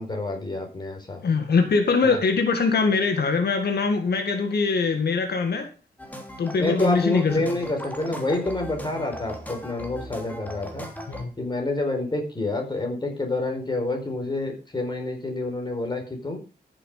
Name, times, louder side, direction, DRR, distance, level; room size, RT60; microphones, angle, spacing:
voice 1, 0.0-1.2 2.0-2.2 6.6-10.9 11.4-16.4, left 2 dB, 25° left, 3 dB, 4.5 m, -28 dB
voice 2, 1.2-5.7 6.4-7.3 11.1-11.3, left 4 dB, 80° left, 5 dB, 2.0 m, -22 dB
sound 1, 6.0-11.2, equal, 10° left, 3.1 m, -38 dB
14.5 x 7.7 x 5.0 m, 0.33 s
wide cardioid pair, 120°, 16 cm